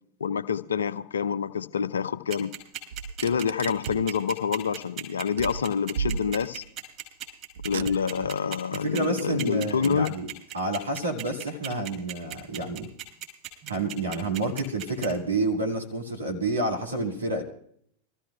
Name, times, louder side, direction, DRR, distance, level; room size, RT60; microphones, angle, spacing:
voice 1, 0.2-2.5 3.2-6.6 7.6-10.2, left 6 dB, 70° left, 0.6 m, -27 dB
sound 1, 2.3-15.1, right 12 dB, 35° right, 5.8 m, -36 dB
Car, 2.9-4.1 5.4-6.7 7.6-8.4, right 6 dB, 60° right, 0.4 m, -35 dB
voice 2, 8.7-12.9 13.6-17.4, right 2 dB, 75° right, 2.0 m, -29 dB
26.5 x 14.5 x 2.3 m
figure-of-eight pair, 90°, 0 cm